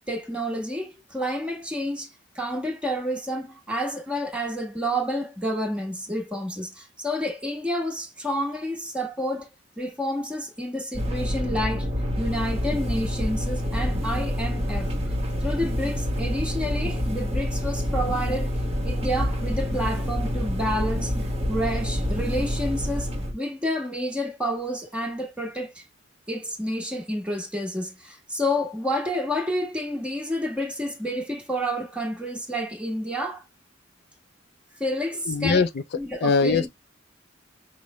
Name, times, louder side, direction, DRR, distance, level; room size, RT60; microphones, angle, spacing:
voice 1, 0.1-2.1 2.3-9.5 9.8-11.9 12.2-14.9 15.4-21.1 21.5-25.8 26.3-33.4 34.8-35.6 36.0-36.7, equal, 5° right, 1.2 m, -29 dB
sound 1, 10.9-23.3, equal, 30° right, 1.1 m, -27 dB
voice 2, 35.3-36.7, left 4 dB, 55° left, 0.4 m, -22 dB
5.4 x 2.0 x 3.0 m
head